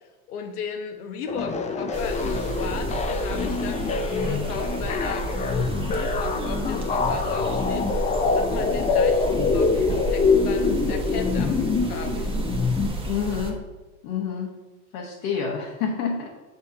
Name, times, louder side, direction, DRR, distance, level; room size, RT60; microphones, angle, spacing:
voice 1, 0.3-9.3 9.5-12.4, left 5 dB, 85° left, 6 dB, 1.1 m, -35 dB
sound 1, 1.3-12.9, left 4 dB, 15° left, 0.4 m, -25 dB
sound 2, 1.9-13.5, right 3 dB, 10° right, 1.2 m, -31 dB
voice 2, 13.1-13.6 14.0-14.6 14.9-16.3, left 6 dB, 65° left, -2 dB, 1.3 m, -28 dB
6.9 x 6.6 x 2.8 m, 1.2 s
supercardioid pair, 110°, 44 cm